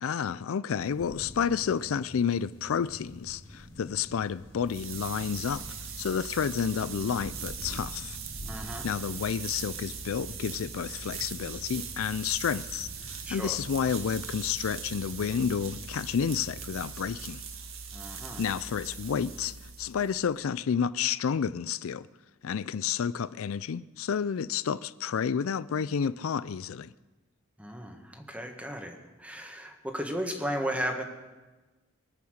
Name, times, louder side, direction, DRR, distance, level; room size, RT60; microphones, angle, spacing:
voice 1, 0.0-5.6 6.0-8.2 8.8-17.4 18.4-22.1 22.4-26.9, left 7 dB, 85° left, 0.4 m, -30 dB
sound 1, 0.8-16.7, equal, 20° left, 2.9 m, -48 dB
sound 2, 4.5-20.3, right 6 dB, 80° right, 1.7 m, -41 dB
voice 2, 8.4-8.9 13.3-13.6 17.9-18.4 27.6-31.0, equal, 5° right, 1.7 m, -35 dB
24.0 x 8.7 x 6.6 m
head